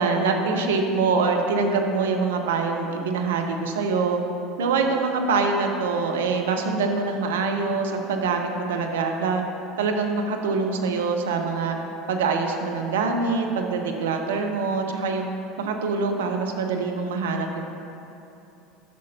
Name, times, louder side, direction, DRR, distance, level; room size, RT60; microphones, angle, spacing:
voice 1, 0.0-4.2 4.6-9.4 9.8-11.8 12.1-15.2 15.6-17.6, right 4 dB, 80° right, 3 dB, 0.7 m, -24 dB
11.0 x 6.4 x 2.8 m, 2.8 s
hypercardioid pair, 80°, 0 cm